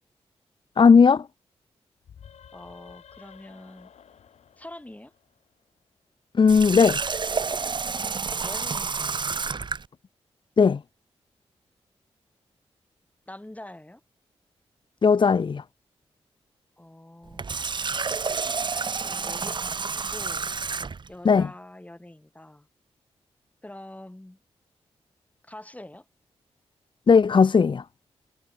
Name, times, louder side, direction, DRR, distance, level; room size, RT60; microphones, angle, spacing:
voice 1, 0.8-1.3 6.3-7.0 10.6-10.8 15.0-15.6 21.2-21.5 27.1-27.8, left 5 dB, 45° left, 0.6 m, -17 dB
sound 1, 2.0-5.6, left 8 dB, 80° left, 3.4 m, -52 dB
voice 2, 2.5-3.9 4.6-5.1 8.2-9.2 13.3-14.0 16.8-17.6 19.0-20.5 21.1-22.7 23.6-24.4 25.4-26.0, left 1 dB, 15° left, 4.1 m, -44 dB
Water tap faucet, 6.5-9.9 17.3-21.1, right 5 dB, 45° right, 0.8 m, -29 dB
cardioid pair, 55°, 11 cm